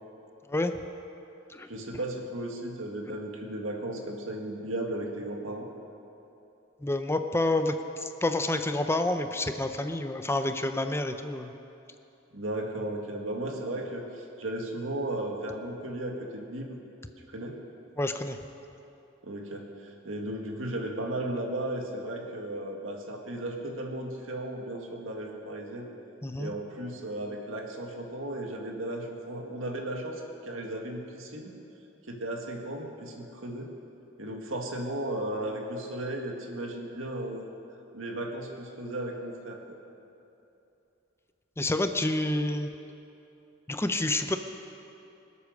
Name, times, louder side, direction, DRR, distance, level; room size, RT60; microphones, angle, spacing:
voice 1, 1.7-5.7 12.3-16.8 17.3-17.6 19.2-25.9 26.4-31.5 32.1-33.7 34.2-37.5 37.9-39.6, right 1 dB, 85° right, 1 dB, 2.0 m, -35 dB
voice 2, 6.8-11.5 18.0-18.4 26.2-26.5 41.6-42.7 43.7-44.4, left 2 dB, 15° left, 7 dB, 0.6 m, -28 dB
24.0 x 8.4 x 6.5 m, 2.8 s
head